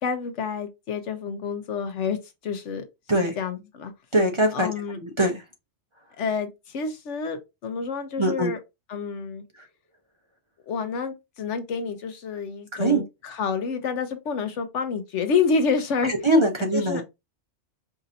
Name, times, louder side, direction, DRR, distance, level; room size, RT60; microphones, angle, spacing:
voice 1, 0.0-2.8 3.4-3.9 4.5-5.0 6.2-8.6 8.9-9.4 10.7-16.1 16.7-17.0, left 5 dB, 75° left, 1.1 m, -28 dB
voice 2, 4.1-5.4 8.2-8.5 12.7-13.0 16.0-17.0, right 1 dB, 30° right, 0.7 m, -22 dB
5.0 x 2.7 x 2.5 m
omnidirectional pair, 1.2 m